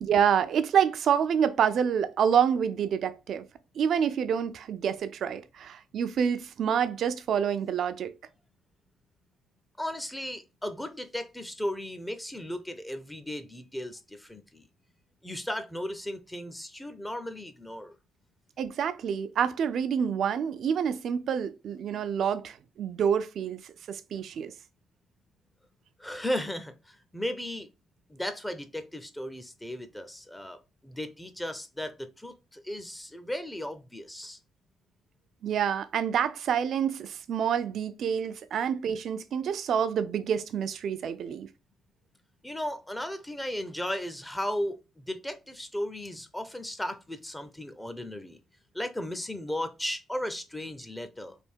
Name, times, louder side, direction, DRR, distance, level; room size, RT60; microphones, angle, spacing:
voice 1, 0.0-3.4 3.8-8.1 18.6-23.6 23.9-24.5 35.4-41.5, right 8 dB, 65° right, 0.5 m, -27 dB
voice 2, 9.8-14.7 15.2-18.0 26.0-27.7 28.1-34.4 42.4-48.4 48.7-51.4, left 1 dB, 10° left, 0.6 m, -36 dB
3.4 x 2.7 x 4.4 m
cardioid pair, 90°, 0 cm